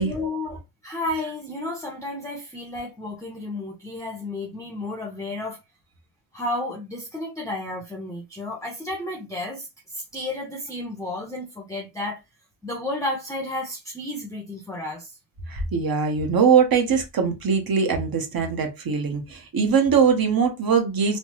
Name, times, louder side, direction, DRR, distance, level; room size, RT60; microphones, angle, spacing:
voice 1, 0.0-5.6 6.3-9.7 9.9-12.2 12.6-15.1, left 2 dB, 5° left, 0.7 m, -32 dB
voice 2, 15.5-21.2, right 6 dB, 50° right, 1.0 m, -21 dB
3.3 x 2.0 x 3.0 m
cardioid pair, 100°, 47 cm